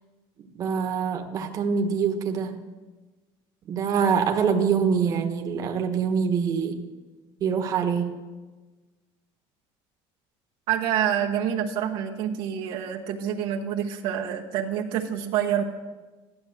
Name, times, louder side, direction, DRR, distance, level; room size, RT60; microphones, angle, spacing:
voice 1, 0.4-2.6 3.7-6.8 7.4-8.1, right 6 dB, 35° right, 4 dB, 1.4 m, -25 dB
voice 2, 10.7-15.6, right 9 dB, 55° right, 1 dB, 1.1 m, -27 dB
15.0 x 12.0 x 7.9 m, 1.3 s
cardioid pair, 175°, 10 cm